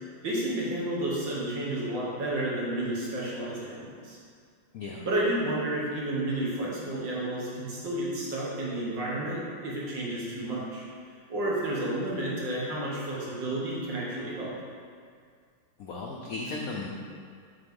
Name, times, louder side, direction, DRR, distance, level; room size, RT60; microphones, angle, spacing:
voice 1, 0.0-4.2 5.1-10.8 11.3-14.5, right 1 dB, 60° right, -6 dB, 2.0 m, -31 dB
voice 2, 4.7-5.1 15.8-16.9, left 3 dB, 80° left, -2 dB, 0.7 m, -36 dB
7.8 x 3.3 x 5.3 m, 2.1 s
omnidirectional pair, 2.3 m